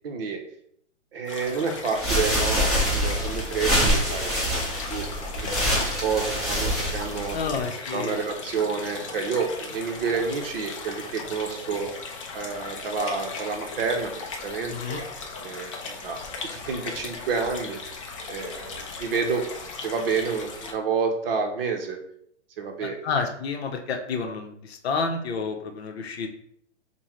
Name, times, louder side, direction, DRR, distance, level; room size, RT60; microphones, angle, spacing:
voice 1, 0.0-0.4 1.1-7.4 7.9-11.9 12.3-15.0 15.3-16.2 16.5-17.8 18.3-19.5 19.8-22.0 22.6-23.0, right 5 dB, 50° right, 3 dB, 0.9 m, -29 dB
sound 1, 1.3-20.7, left 4 dB, 25° left, 0.4 m, -37 dB
sound 2, 1.9-7.6, equal, ahead, 0.9 m, -25 dB
voice 2, 7.3-8.2 14.7-15.0 22.8-26.3, left 5 dB, 60° left, 4 dB, 0.7 m, -30 dB
5.4 x 2.2 x 3.1 m, 0.68 s
hypercardioid pair, 150°, 37 cm